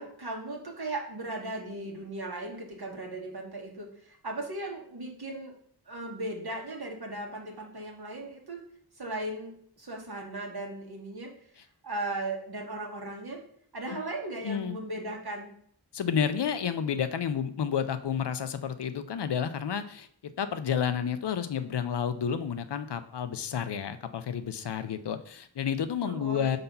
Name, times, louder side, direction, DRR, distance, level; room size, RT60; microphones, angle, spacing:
voice 1, 0.0-5.5 5.8-8.6 9.0-11.3 11.8-13.4 13.7-15.5 26.0-26.6, right 2 dB, 70° right, 0 dB, 1.6 m, -37 dB
voice 2, 14.4-14.8 15.9-20.1 20.4-26.6, left 7 dB, 90° left, 11 dB, 0.6 m, -30 dB
5.5 x 4.0 x 5.5 m, 0.62 s
wide cardioid pair, 50°, 40 cm